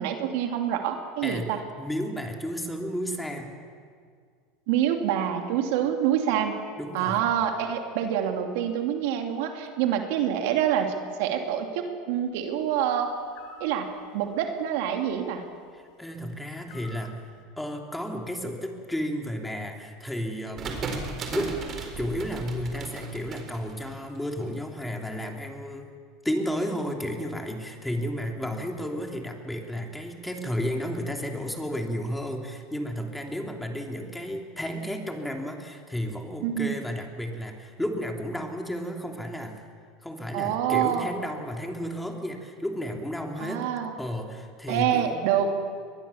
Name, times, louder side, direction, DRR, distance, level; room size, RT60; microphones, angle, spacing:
voice 1, 0.0-1.6 4.7-6.6 6.9-10.9 11.2-13.1 13.6-13.9 14.1-15.4 36.4-36.8 40.3-41.1 43.4-43.9 44.7-45.5, right 9 dB, 70° right, 4 dB, 2.7 m, -26 dB
voice 2, 1.8-3.5 6.8-7.2 15.7-17.3 17.6-20.8 21.3-21.6 22.0-25.9 26.2-39.6 40.0-43.7 44.0-45.3, equal, 5° left, 2 dB, 3.1 m, -32 dB
sound 1, 13.3-13.8 16.7-17.1, left 2 dB, 60° left, 3.0 m, -46 dB
sound 2, 20.6-24.5, right 4 dB, 35° right, 4.4 m, -35 dB
23.0 x 20.5 x 7.2 m, 2.1 s
supercardioid pair, 110°, 0 cm